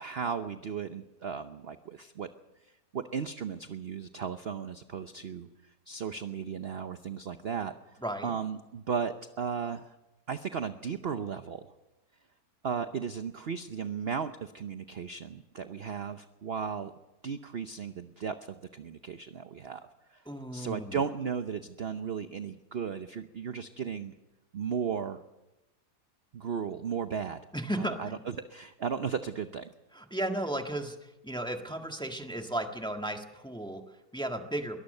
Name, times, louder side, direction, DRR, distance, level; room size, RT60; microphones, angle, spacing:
voice 1, 0.0-2.3 2.9-5.5 5.9-7.7 8.2-9.9 10.3-11.7 12.6-16.9 17.2-20.2 20.5-24.1 24.5-25.2 26.3-27.4 27.8-29.7, right 6 dB, 50° right, 9 dB, 0.8 m, -35 dB
voice 2, 8.0-8.3 20.2-21.1 27.5-28.2 29.9-34.8, right 1 dB, 5° left, 4 dB, 1.5 m, -35 dB
22.5 x 19.0 x 6.6 m, 1.0 s
omnidirectional pair, 1.7 m